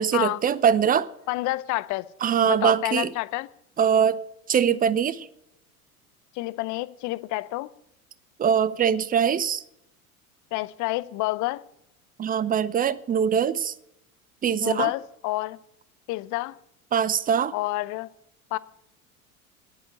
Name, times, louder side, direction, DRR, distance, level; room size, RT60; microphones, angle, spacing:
voice 1, 0.0-1.1 2.2-3.1 3.8-4.2 4.5-5.3 8.4-9.6 12.2-13.7 14.4-14.9 16.9-17.5, right 8 dB, 20° right, 0.7 m, -22 dB
voice 2, 1.3-2.0 2.5-3.5 6.4-7.7 10.5-11.6 14.6-15.6 16.1-16.6 17.5-18.1 18.5-18.6, left 19 dB, 45° left, 0.7 m, -28 dB
10.5 x 9.1 x 9.1 m
figure-of-eight pair, 80°, 43 cm